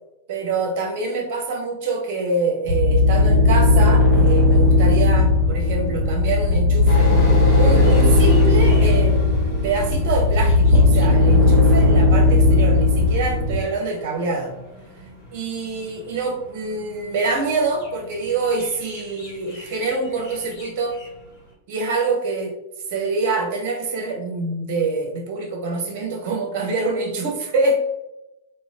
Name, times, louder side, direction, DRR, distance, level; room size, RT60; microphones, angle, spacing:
voice 1, 0.3-7.1 7.6-9.2 9.6-14.5 15.3-21.0 21.7-22.5 22.9-27.8, right 3 dB, 50° right, 2 dB, 0.6 m, -25 dB
sound 1, 2.7-13.6, left 2 dB, 25° right, 1.2 m, -16 dB
sound 2, 6.8-21.5, left 1 dB, 45° left, 1.3 m, -34 dB
3.0 x 2.2 x 2.3 m, 0.97 s
figure-of-eight pair, 90°, 0 cm